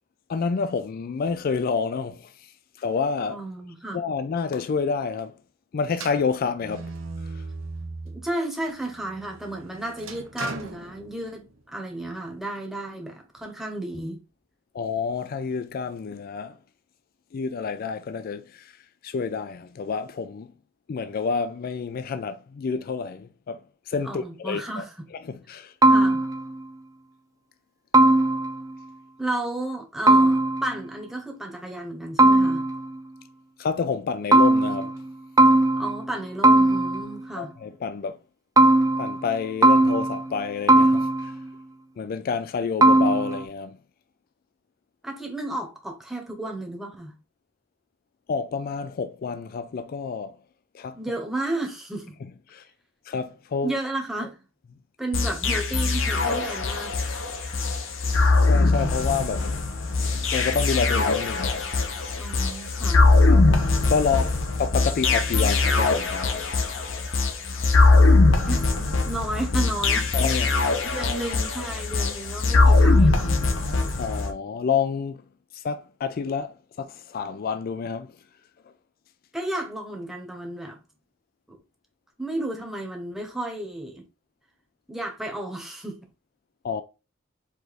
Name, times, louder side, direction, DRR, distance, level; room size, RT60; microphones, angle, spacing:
voice 1, 0.3-3.4 3.9-5.4 5.7-6.9 7.2-7.4 14.7-16.6 17.3-20.5 20.9-23.6 23.9-24.8 25.3-25.7 33.6-35.0 37.4-38.2 39.0-41.3 42.0-43.8 48.3-50.4 50.7-51.0 52.5-52.7 53.1-53.7 58.4-59.5 60.3-61.6 63.3-63.6 63.9-66.4 70.1-70.6 74.0-75.2 75.5-78.2 86.6-86.8, left 5 dB, 45° left, 0.3 m, -29 dB
voice 2, 3.3-4.0 8.0-14.2 24.0-24.9 25.9-26.3 29.2-32.7 35.7-37.5 45.0-47.1 51.0-52.2 53.6-54.4 55.0-57.0 62.2-63.1 68.5-70.1 70.8-73.4 79.3-80.8 81.5-81.6 82.2-84.0 84.9-86.0, right 1 dB, ahead, 1.0 m, -33 dB
sound 1, 5.9-8.3 8.8-11.6, right 3 dB, 85° right, 0.9 m, -38 dB
sound 2, 25.8-26.6 27.9-28.7 30.1-30.9 32.2-33.0 34.3-35.1 35.4-36.2 36.4-37.2 38.6-39.3 39.6-40.4 40.7-41.5 42.8-43.4, right 2 dB, 20° right, 0.5 m, -18 dB
sound 3, 55.1-74.3, left 3 dB, 70° left, 0.9 m, -21 dB
4.9 x 2.5 x 4.0 m
head